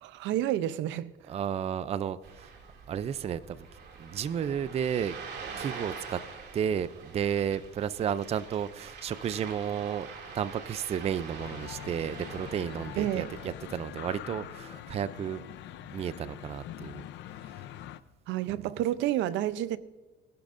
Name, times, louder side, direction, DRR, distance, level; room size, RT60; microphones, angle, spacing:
voice 1, 0.0-1.1 13.0-13.3 18.3-19.8, right 13 dB, 80° right, 0.6 m, -29 dB
voice 2, 1.3-2.5 2.9-3.7 4.0-5.2 5.6-6.2 6.5-10.1 10.3-15.4 15.9-17.0, right 8 dB, 35° right, 0.4 m, -32 dB
Ocean, 2.2-13.5, right 5 dB, 60° right, 2.5 m, -45 dB
sound 1, 11.4-18.0, left 12 dB, 70° left, 0.7 m, -43 dB
22.0 x 11.5 x 2.6 m
cardioid pair, 125°, 19 cm